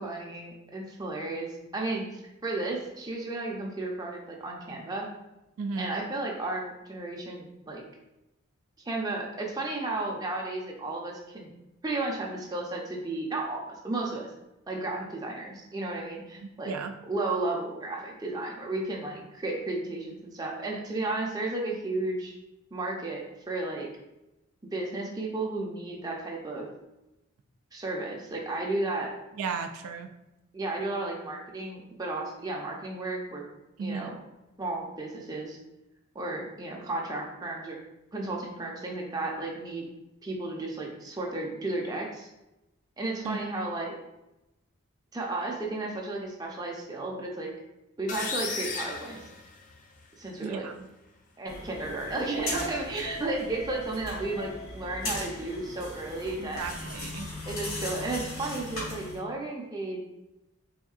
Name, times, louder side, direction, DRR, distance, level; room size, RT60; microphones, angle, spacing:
voice 1, 0.0-5.1 5.8-7.8 8.9-11.5 11.8-14.3 14.7-16.7 17.1-22.3 22.7-23.9 24.6-26.7 27.7-29.1 30.5-33.4 33.8-34.1 34.6-35.6 36.1-37.8 38.1-39.9 40.2-42.3 43.0-44.0 45.1-47.5 48.0-49.2 50.2-50.7 51.4-56.6 57.4-60.0, right 2 dB, 15° right, -1 dB, 0.5 m, -33 dB
voice 2, 5.6-5.9 16.7-16.9 29.4-30.1 33.8-34.1 43.2-43.4 50.4-50.7 56.4-57.3, right 5 dB, 80° right, 6 dB, 0.3 m, -34 dB
sound 1, 48.1-50.0, left 4 dB, 35° left, 0.4 m, -35 dB
sound 2, 51.5-59.2, left 1 dB, 70° left, 1.4 m, -38 dB
3.6 x 3.5 x 2.4 m, 0.95 s
head